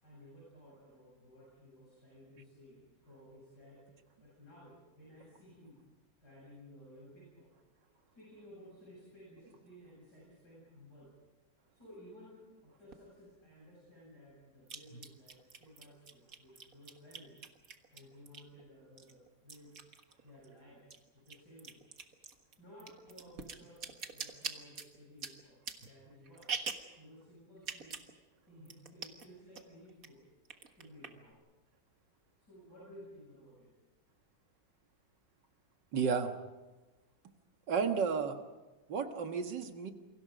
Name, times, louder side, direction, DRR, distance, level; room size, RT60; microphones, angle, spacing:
voice 1, 0.0-5.8 6.2-7.5 8.1-11.1 11.7-17.4 17.9-19.8 20.2-20.9 21.1-21.8 22.6-26.5 27.0-28.0 28.5-30.2 30.8-31.4 32.4-33.7, equal, 55° left, -6 dB, 8.5 m, -56 dB
sound 1, 12.9-13.0 14.7-18.6 19.0-20.5 20.8-27.0 27.6-28.1 28.4-28.5 28.7-29.3 29.6-30.1 30.4-31.3, right 5 dB, 45° right, 1.8 m, -44 dB
voice 2, 35.9-36.3 37.7-38.4 38.9-39.9, right 6 dB, 65° right, 6 dB, 2.2 m, -32 dB
29.0 x 24.0 x 5.2 m, 1.2 s
omnidirectional pair, 2.1 m